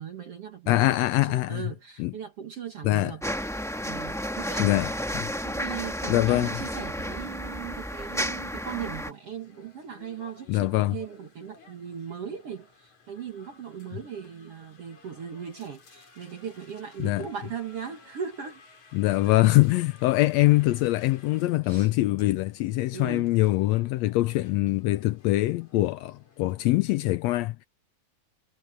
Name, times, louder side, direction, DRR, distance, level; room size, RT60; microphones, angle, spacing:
voice 1, 0.0-3.2 3.9-5.0 5.4-18.6 19.2-19.4 21.6-21.9 22.9-23.3, right 7 dB, 55° right, 2.3 m, -38 dB
voice 2, 0.7-1.6 2.0-2.1 2.8-3.1 4.6-4.9 5.1-5.3 6.1-6.5 10.5-11.0 17.0-17.3 18.9-27.7, left 18 dB, 85° left, 1.5 m, -23 dB
sound 1, 3.2-9.1, equal, ahead, 0.6 m, -32 dB
sound 2, 7.9-26.6, left 4 dB, 60° left, 5.5 m, -56 dB
omnidirectional pair, 3.6 m